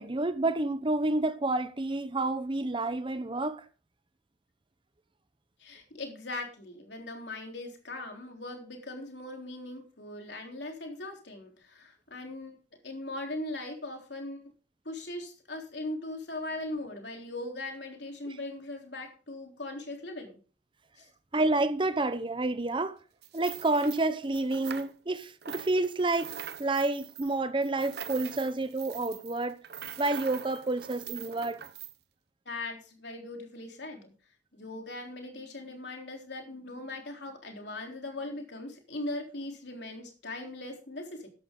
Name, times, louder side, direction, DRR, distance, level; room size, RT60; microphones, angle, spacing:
voice 1, 0.0-3.6 18.2-18.3 21.3-23.0 23.3-26.3 26.6-29.6 30.0-31.6, right 2 dB, 30° right, 0.8 m, -29 dB
voice 2, 5.6-12.6 12.8-14.5 14.9-20.4 21.0-21.1 32.5-34.1 34.5-41.3, left 2 dB, 70° left, 3.6 m, -40 dB
sound 1, 23.2-25.2 25.4-31.9, right 9 dB, 60° right, 0.9 m, -43 dB
14.0 x 11.0 x 3.8 m
head